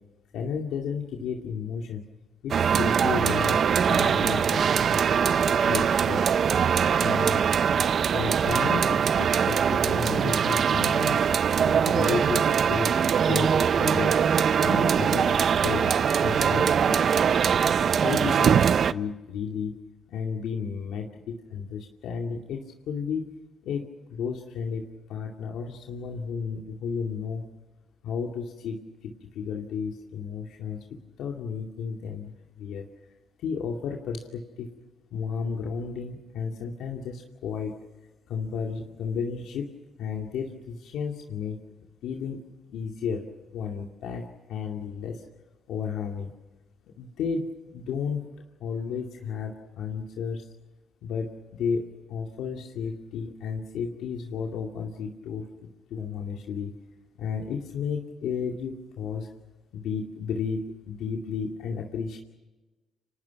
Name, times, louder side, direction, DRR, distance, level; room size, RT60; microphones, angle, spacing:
voice 1, 0.3-2.0 2.4-4.6 4.9-6.3 7.0-7.4 8.1-11.2 11.6-14.2 14.6-17.0 18.0-19.8 20.1-23.3 23.6-27.5 28.0-30.8 31.2-32.3 32.6-32.9 33.4-34.7 35.1-37.7 38.3-39.7 40.0-41.6 42.0-42.4 42.7-43.3 43.5-44.2 44.5-45.2 45.7-46.3 47.0-48.2 48.6-50.5 51.0-55.5 55.9-56.7 57.2-59.3 59.7-62.2, left 6 dB, 80° left, 1 dB, 2.4 m, -33 dB
sound 1, 2.5-18.9, right 7 dB, 55° right, 0.7 m, -22 dB
29.5 x 25.5 x 6.0 m, 1.1 s
cardioid pair, 90°, 0 cm